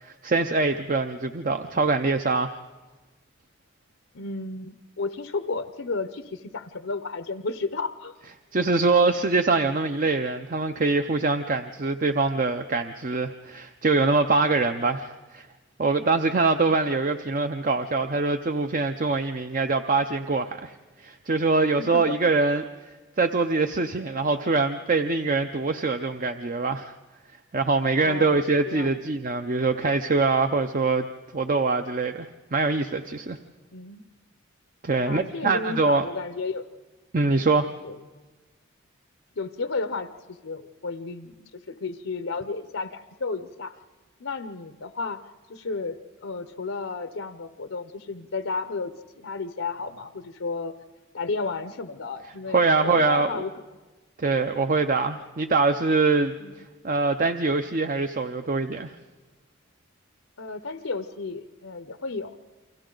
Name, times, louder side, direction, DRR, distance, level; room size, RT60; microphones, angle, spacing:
voice 1, 0.0-2.6 8.5-15.5 15.8-22.6 23.2-26.9 27.5-31.1 31.3-32.3 32.5-33.4 34.8-36.1 37.1-37.7 52.5-53.4 54.2-56.3 56.8-58.9, right 3 dB, 40° right, 8 dB, 0.6 m, -24 dB
voice 2, 4.1-8.2 21.8-22.3 28.0-28.9 33.7-34.0 35.1-36.6 37.8-38.0 39.4-43.7 44.2-45.2 45.5-50.7 51.1-53.5 54.3-54.5 56.4-56.5 60.4-62.4, left 3 dB, 75° left, 10 dB, 0.8 m, -33 dB
29.0 x 24.0 x 3.9 m, 1.3 s
head